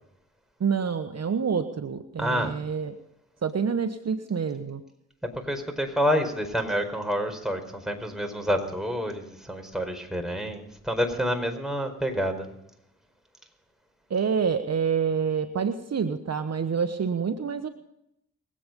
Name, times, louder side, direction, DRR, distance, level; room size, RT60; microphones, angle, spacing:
voice 1, 0.6-3.0 3.4-4.8 14.1-17.7, right 6 dB, 55° right, 9 dB, 1.2 m, -27 dB
voice 2, 2.2-2.5 5.4-12.5, equal, ahead, 3 dB, 4.7 m, -28 dB
24.0 x 8.8 x 5.3 m, 0.78 s
supercardioid pair, 40°, 31 cm